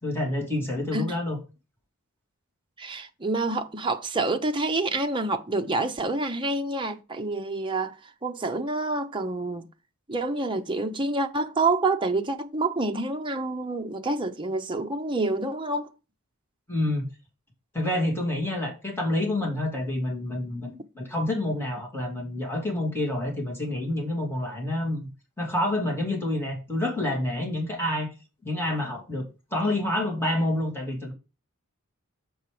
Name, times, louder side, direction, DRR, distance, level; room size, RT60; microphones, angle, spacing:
voice 1, 0.0-1.4 16.7-17.1 17.7-25.1 25.4-28.1 28.4-31.1, left 1 dB, 10° left, 2.2 m, -28 dB
voice 2, 2.8-9.7 10.1-15.9, right 2 dB, 20° right, 0.7 m, -27 dB
6.8 x 5.4 x 4.9 m
head